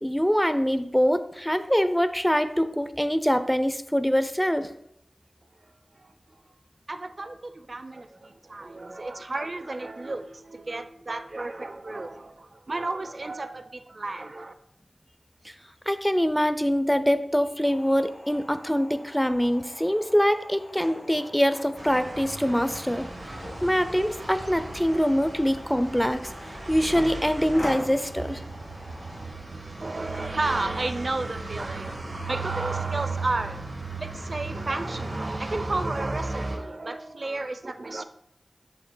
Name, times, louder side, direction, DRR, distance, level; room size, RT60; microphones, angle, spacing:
voice 1, 0.0-4.7 15.4-15.5 15.9-26.3 26.7-28.4, equal, 5° left, 0.5 m, -24 dB
voice 2, 5.6-6.4 6.9-14.5 29.8-33.6 34.0-38.0, right 2 dB, 55° right, 0.5 m, -33 dB
sound 1, 17.6-29.3, left 1 dB, 70° left, 2.7 m, -42 dB
sound 2, 21.8-36.6, right 3 dB, 75° right, 1.3 m, -36 dB
8.0 x 5.7 x 2.2 m
wide cardioid pair, 45°, 0 cm